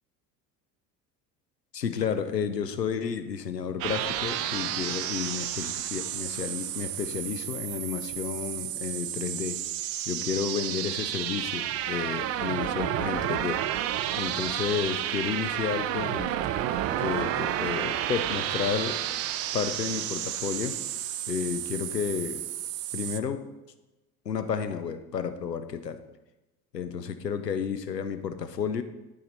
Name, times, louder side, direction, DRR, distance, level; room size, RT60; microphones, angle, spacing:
voice 1, 1.7-9.6 10.1-13.6 14.2-16.4 17.0-19.0 19.5-20.8 21.3-22.4 22.9-23.5 24.3-26.0 26.7-28.8, left 7 dB, 90° left, 11 dB, 0.6 m, -31 dB
sound 1, 3.8-23.2, right 12 dB, 35° right, 0.4 m, -31 dB
11.0 x 4.9 x 4.0 m, 1.0 s
figure-of-eight pair, 65°, 48 cm